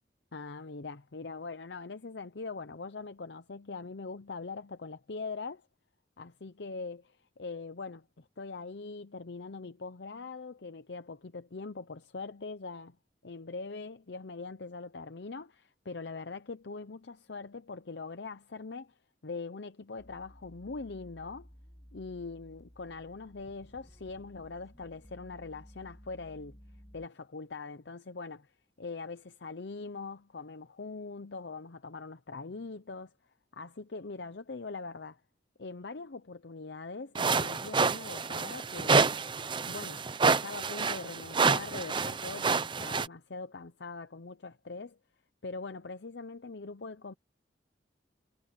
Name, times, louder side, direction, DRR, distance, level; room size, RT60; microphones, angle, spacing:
voice 1, 0.3-5.6 6.2-7.0 7.4-13.0 13.2-18.9 19.2-21.5 21.9-26.6 26.9-33.1 33.5-35.2 35.6-39.2 39.7-45.0 45.4-47.1, left 4 dB, 70° left, 0.8 m, -42 dB
sound 1, 20.0-27.1, equal, 20° left, 6.5 m, -55 dB
sound 2, 37.1-43.1, right 4 dB, 25° right, 0.6 m, -28 dB
head